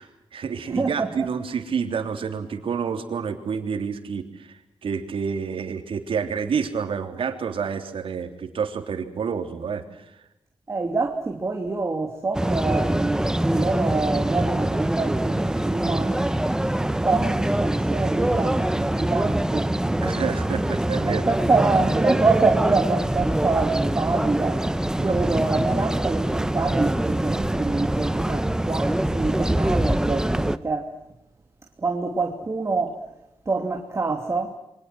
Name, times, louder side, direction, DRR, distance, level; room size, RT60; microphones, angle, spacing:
voice 1, 0.0-10.0 20.0-21.5 25.3-25.5, right 6 dB, 80° right, 6 dB, 3.4 m, -29 dB
voice 2, 0.7-1.1 10.7-16.3 17.0-19.7 21.1-24.6 25.0-30.9 31.8-33.0 33.5-34.5, right 3 dB, 30° right, 3 dB, 2.7 m, -26 dB
sound 1, 12.3-30.6, right 1 dB, 5° right, 1.0 m, -24 dB
28.0 x 24.5 x 6.2 m, 0.86 s
wide cardioid pair, 115°, 9 cm